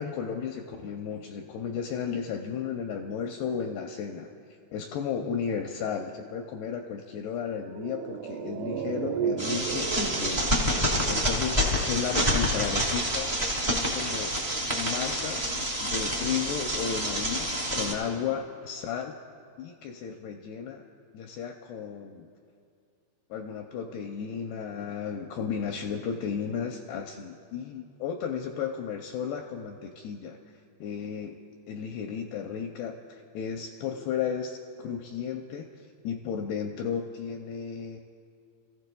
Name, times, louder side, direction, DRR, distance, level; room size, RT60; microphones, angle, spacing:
voice 1, 0.0-4.3 4.7-10.8 11.1-13.3 13.7-14.4 14.7-15.5 15.8-19.1 19.6-20.9 21.1-22.3 23.3-30.4 30.8-31.4 31.7-38.0, left 7 dB, 85° left, 3 dB, 2.3 m, -34 dB
sound 1, 7.5-12.1 12.4-12.5, right 6 dB, 85° right, 3.3 m, -34 dB
sound 2, 9.4-17.9, equal, 60° right, 0.4 m, -28 dB
29.5 x 15.0 x 2.3 m, 2.3 s
omnidirectional pair, 5.1 m